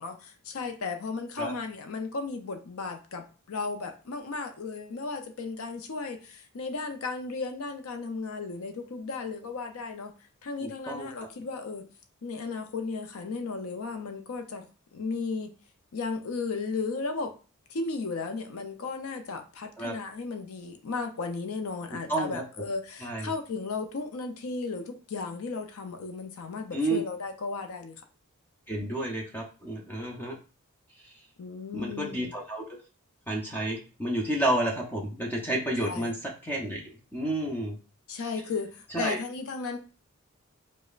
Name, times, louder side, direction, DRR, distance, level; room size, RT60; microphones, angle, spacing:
voice 1, 0.0-10.1 10.4-11.9 12.2-14.7 14.9-15.5 15.9-17.3 17.7-28.0 31.4-32.3 35.8-36.1 38.1-39.8, left 4 dB, 75° left, 6 dB, 0.5 m, -35 dB
voice 2, 10.6-11.1 19.8-19.9 22.1-22.4 23.0-23.3 26.7-27.0 28.7-30.4 31.7-32.6 33.3-36.2 36.4-37.8 38.9-39.2, right 1 dB, 10° left, -1 dB, 0.6 m, -30 dB
4.9 x 2.1 x 2.4 m, 0.35 s
head